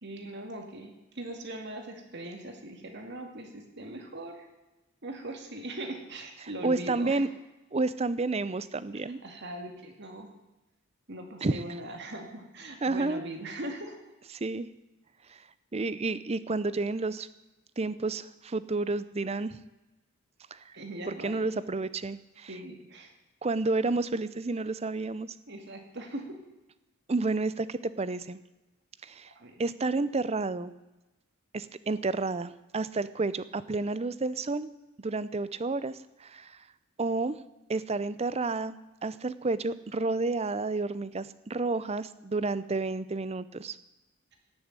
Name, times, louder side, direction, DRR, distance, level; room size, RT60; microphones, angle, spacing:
voice 1, 0.0-4.5 5.0-7.3 8.9-10.3 11.1-14.0 20.7-21.4 22.5-23.1 25.5-26.4 29.4-29.6, right 1 dB, 55° right, 4 dB, 2.3 m, -40 dB
voice 2, 6.6-7.3 7.7-9.2 11.4-11.6 12.8-13.2 14.3-14.7 15.3-15.4 15.7-17.3 17.8-19.6 20.5-20.7 21.1-22.5 23.4-25.4 27.1-28.4 29.0-29.3 29.6-30.7 31.5-34.7 35.0-36.6 37.0-37.4 37.7-43.8, right 3 dB, 30° right, 16 dB, 0.5 m, -30 dB
17.5 x 7.1 x 8.9 m, 1.0 s
head